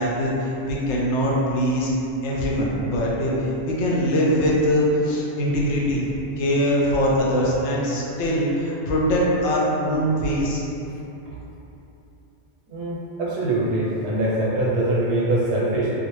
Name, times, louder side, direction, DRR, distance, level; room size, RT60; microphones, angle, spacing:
voice 1, 0.0-1.9 2.2-10.6, equal, 80° left, -4 dB, 0.9 m, -22 dB
voice 2, 12.7-15.9, right 1 dB, 80° right, -5 dB, 0.9 m, -23 dB
2.4 x 2.1 x 3.0 m, 2.9 s
omnidirectional pair, 1.2 m